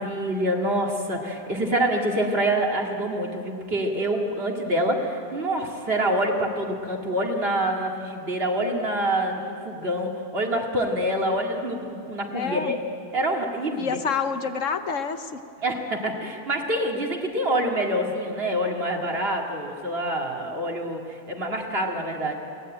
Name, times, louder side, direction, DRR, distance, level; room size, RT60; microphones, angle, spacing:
voice 1, 0.0-12.8 13.1-14.0 15.6-22.3, right 1 dB, 45° right, 1 dB, 2.5 m, -26 dB
voice 2, 12.3-12.7 13.8-15.4, left 6 dB, 65° left, 9 dB, 1.2 m, -28 dB
22.5 x 18.5 x 8.9 m, 2.6 s
omnidirectional pair, 1.5 m